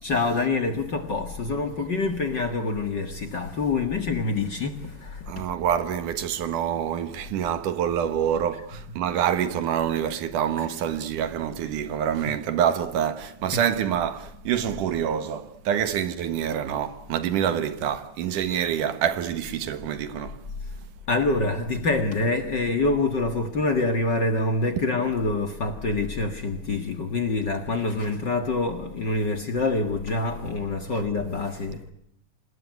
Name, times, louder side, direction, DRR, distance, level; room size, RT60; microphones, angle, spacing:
voice 1, 0.0-5.4 8.7-9.0 13.5-13.6 21.1-31.9, left 3 dB, 40° left, 1.8 m, -26 dB
voice 2, 5.3-20.4, right 9 dB, 75° right, 2.9 m, -26 dB
26.5 x 20.0 x 9.6 m
omnidirectional pair, 3.7 m